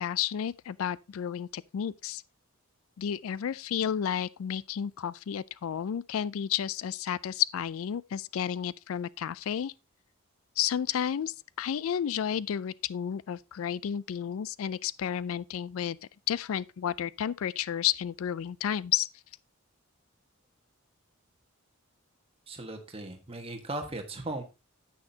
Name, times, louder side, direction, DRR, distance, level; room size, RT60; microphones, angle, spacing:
voice 1, 0.0-2.2 3.0-9.7 10.6-16.0 16.3-19.1, left 9 dB, 70° left, 0.3 m, -31 dB
voice 2, 22.5-24.4, right 2 dB, 25° right, 1.5 m, -37 dB
9.8 x 8.5 x 2.8 m
head